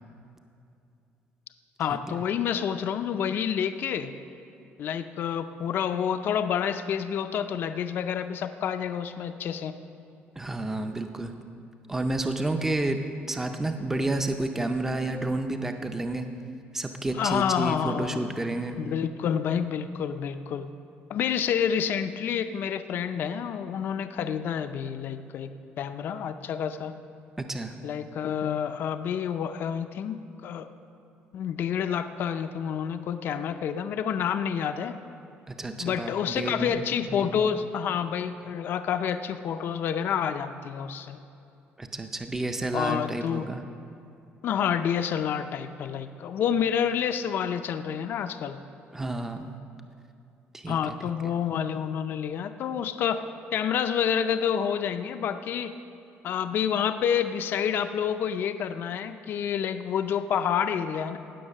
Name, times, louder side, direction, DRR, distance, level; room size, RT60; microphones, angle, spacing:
voice 1, 1.8-4.1 4.8-9.8 17.2-18.3 18.8-20.7 21.1-25.5 25.8-26.9 27.8-30.7 31.3-35.0 35.8-41.2 42.7-43.5 44.4-48.6 50.7-53.2 53.5-55.7 56.2-61.2, left 8 dB, 55° left, 9 dB, 0.5 m, -28 dB
voice 2, 10.4-11.3 11.9-13.0 13.3-16.2 16.7-18.8 27.4-27.7 35.5-37.4 41.8-43.6 48.9-49.5 50.5-51.0 51.2-51.3, right 2 dB, 10° right, 6 dB, 0.5 m, -30 dB
18.0 x 6.5 x 6.5 m, 2.7 s
cardioid pair, 155°, 4 cm